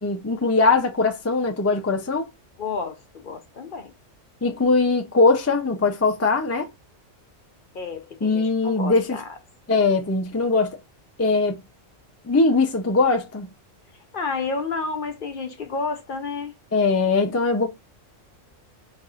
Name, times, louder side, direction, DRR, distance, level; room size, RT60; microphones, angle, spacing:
voice 1, 0.0-2.3 4.4-6.7 8.2-9.2 9.7-10.8 11.2-11.6 12.3-13.5 16.7-17.7, left 3 dB, 25° left, 0.3 m, -21 dB
voice 2, 2.6-3.9 7.7-9.3 14.1-16.5, left 4 dB, 50° left, 0.7 m, -30 dB
3.2 x 2.5 x 4.2 m
omnidirectional pair, 1.3 m